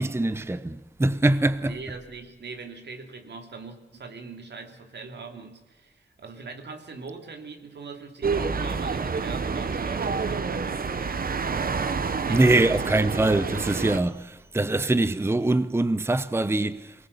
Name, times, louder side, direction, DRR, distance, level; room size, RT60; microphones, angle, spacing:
voice 1, 0.0-1.7 12.3-16.9, right 2 dB, 15° right, 0.7 m, -23 dB
voice 2, 1.7-11.9 12.2-13.1, right 4 dB, 80° right, 2.7 m, -41 dB
sound 1, 8.2-14.0, right 5 dB, 60° right, 1.1 m, -28 dB
23.5 x 18.5 x 7.0 m
wide cardioid pair, 95°, 17 cm